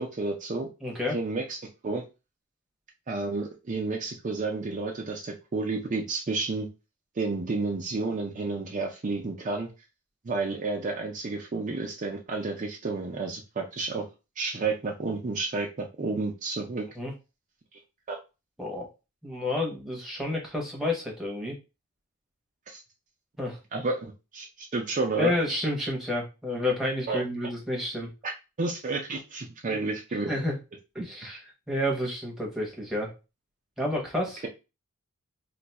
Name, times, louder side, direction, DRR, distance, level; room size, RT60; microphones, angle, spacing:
voice 1, 0.0-0.7 1.1-1.6 1.8-2.0 3.1-6.7 7.2-9.7 10.2-14.0 14.4-16.9 18.1-18.2 22.7-22.8 23.7-25.3 27.1-27.2 28.2-28.3 28.6-30.3, right 3 dB, 35° right, 1 dB, 0.4 m, -31 dB
voice 2, 0.8-1.2 17.0-17.1 18.6-18.9 19.2-21.5 23.4-23.6 25.2-28.1 29.7-29.8 30.3-30.6 30.9-33.1 33.8-34.4, left 1 dB, ahead, -2 dB, 0.9 m, -30 dB
2.5 x 2.3 x 4.0 m, 0.28 s
head